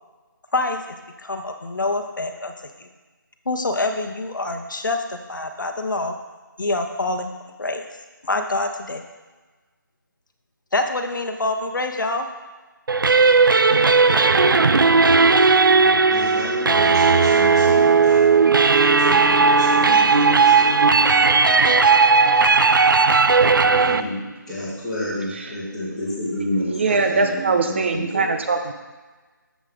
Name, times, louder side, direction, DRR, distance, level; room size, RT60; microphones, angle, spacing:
voice 1, 1.2-2.5 2.8-2.9 3.5-6.1 6.6-7.3 7.6-7.8 8.2-9.0 10.7-12.3, left 2 dB, 65° left, 6 dB, 1.0 m, -25 dB
sound 1, 12.9-24.0, right 4 dB, 75° right, 0.5 m, -16 dB
voice 2, 16.1-18.2 18.6-21.6 23.6-28.3, left 1 dB, 5° left, -14 dB, 2.6 m, -30 dB
voice 3, 26.7-28.7, right 4 dB, 35° right, 6 dB, 0.6 m, -21 dB
7.4 x 7.3 x 3.7 m, 1.3 s
figure-of-eight pair, 160°, 11 cm